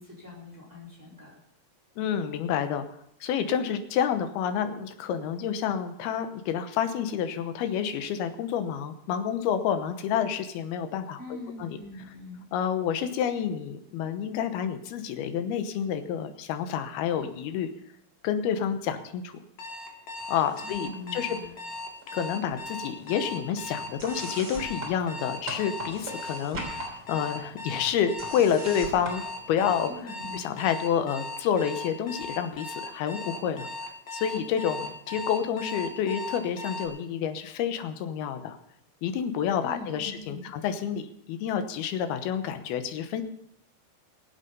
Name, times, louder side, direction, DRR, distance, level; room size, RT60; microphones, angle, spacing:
voice 1, 0.0-1.3 11.2-12.4 20.6-21.5 29.9-30.4 39.6-40.5, left 2 dB, 5° right, -6 dB, 4.3 m, -42 dB
voice 2, 2.0-2.9 3.2-11.2 11.6-11.8 12.5-17.7 18.2-19.3 20.3-21.4 22.1-29.2 29.5-29.9 30.3-33.7 34.1-38.6 39.0-43.2, left 8 dB, 85° left, 9 dB, 3.0 m, -29 dB
Alarm, 19.6-36.9, left 2 dB, 55° left, 2.6 m, -38 dB
sound 1, 20.2-21.0 21.2-22.2 22.5-30.1, right 2 dB, 30° right, 3.5 m, -42 dB
21.5 x 8.1 x 5.4 m, 0.74 s
omnidirectional pair, 4.4 m